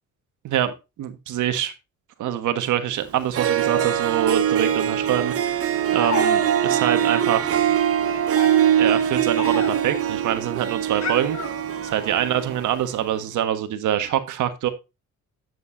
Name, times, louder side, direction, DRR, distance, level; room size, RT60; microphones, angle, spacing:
voice 1, 1.0-1.7 2.2-5.6 5.9-7.6 8.8-11.4 11.8-14.7, right 10 dB, 80° right, 1.5 m, -25 dB
Harp, 3.0-3.1 3.3-12.9, right 10 dB, 50° right, 0.9 m, -22 dB
sound 1, 5.9-6.8 8.0-10.0 11.0-12.1, left 5 dB, 65° left, 3.8 m, -32 dB
10.0 x 8.1 x 2.6 m
cardioid pair, 90°, 30 cm